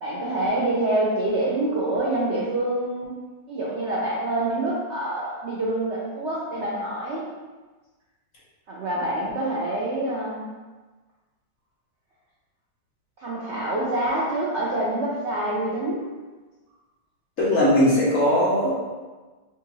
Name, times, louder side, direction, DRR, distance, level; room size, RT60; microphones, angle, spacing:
voice 1, 0.0-3.1 3.5-7.3 8.7-10.5 13.2-16.1, right 1 dB, 90° right, -7 dB, 0.6 m, -26 dB
voice 2, 17.4-18.7, left 1 dB, 50° left, -7 dB, 1.2 m, -19 dB
5.1 x 2.6 x 2.7 m, 1.3 s
omnidirectional pair, 2.0 m